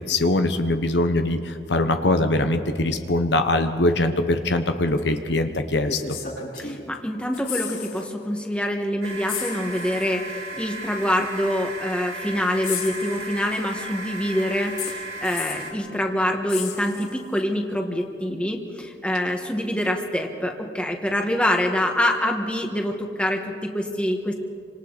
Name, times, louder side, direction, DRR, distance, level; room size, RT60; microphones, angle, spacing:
voice 1, 0.1-6.0, left 2 dB, 75° left, 7 dB, 1.1 m, -22 dB
sound 1, 5.0-5.1 5.9-7.0 7.2-8.1 8.4-8.5 9.3-10.1 11.2-11.3 12.6-13.7 14.8-15.7 16.5-17.4 19.2-19.3, left 7 dB, 55° left, 6.9 m, -34 dB
voice 2, 6.6-24.3, left 1 dB, 5° left, 2 dB, 1.6 m, -25 dB
sound 2, 9.0-15.7, right 2 dB, 60° right, 3.1 m, -35 dB
28.5 x 26.0 x 4.1 m, 2.4 s
head